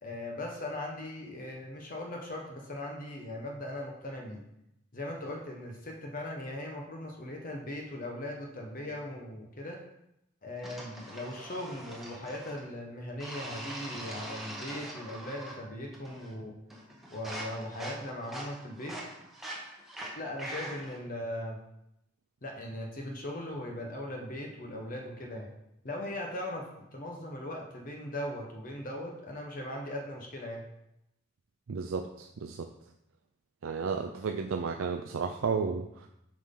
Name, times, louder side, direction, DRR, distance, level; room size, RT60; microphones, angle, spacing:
voice 1, 0.0-4.4 4.9-9.8 10.4-16.5 17.1-19.0 20.2-21.6 22.4-25.5 25.8-30.6, left 1 dB, 40° left, 0 dB, 1.0 m, -39 dB
sound 1, 10.6-12.7 13.2-15.7 15.9-16.4 16.7-21.0, right 1 dB, ahead, 1.1 m, -43 dB
voice 2, 31.7-32.7 33.6-36.1, right 5 dB, 80° right, 3 dB, 0.5 m, -33 dB
7.3 x 5.6 x 3.8 m, 0.82 s
head